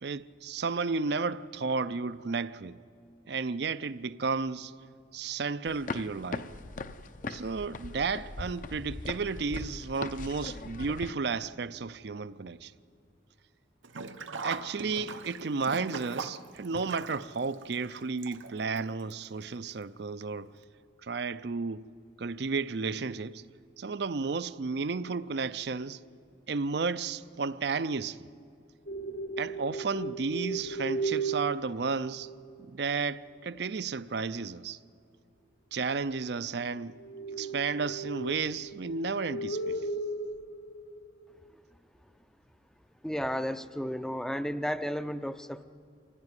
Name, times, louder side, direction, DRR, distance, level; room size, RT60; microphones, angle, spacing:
voice 1, 0.0-2.8 3.3-4.7 5.1-6.5 7.3-12.7 14.4-20.5 21.0-21.9 22.2-23.4 23.8-26.0 26.5-28.3 29.4-32.3 32.6-34.8 35.7-37.0 37.4-39.8, right 4 dB, 55° right, 0.5 m, -33 dB
sound 1, 5.7-11.1, left 3 dB, 45° left, 0.6 m, -40 dB
Sink (filling or washing), 13.8-18.8 19.1-19.2 20.2-20.3 20.6-20.7, right 4 dB, 80° right, 0.9 m, -40 dB
sound 2, 28.9-32.6 37.0-41.4, right 3 dB, 60° left, 0.9 m, -36 dB
voice 2, 43.0-45.6, equal, 5° left, 0.5 m, -33 dB
24.5 x 15.5 x 9.7 m
head